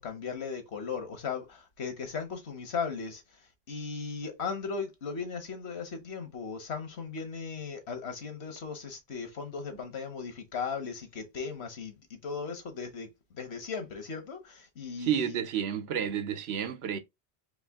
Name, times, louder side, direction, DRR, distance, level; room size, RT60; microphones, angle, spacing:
voice 1, 0.0-3.4 3.7-15.4, left 5 dB, 85° left, 1.4 m, -37 dB
voice 2, 15.0-17.0, right 9 dB, 80° right, 0.9 m, -30 dB
4.8 x 2.5 x 3.6 m
omnidirectional pair, 1.1 m